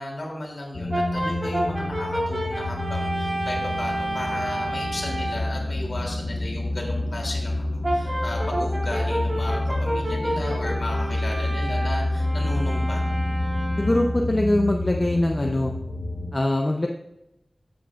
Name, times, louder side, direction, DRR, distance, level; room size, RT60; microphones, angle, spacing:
voice 1, 0.0-13.0, left 1 dB, 55° left, -1 dB, 2.9 m, -35 dB
sound 1, 0.7-16.3, left 1 dB, 75° left, 1.1 m, -28 dB
Brass instrument, 0.9-5.5 7.8-14.2, right 1 dB, 35° right, 2.4 m, -30 dB
voice 2, 13.8-15.7 16.3-16.9, left 1 dB, 35° left, 2 dB, 0.6 m, -22 dB
14.0 x 7.7 x 2.5 m, 0.90 s
wide cardioid pair, 80°, 0 cm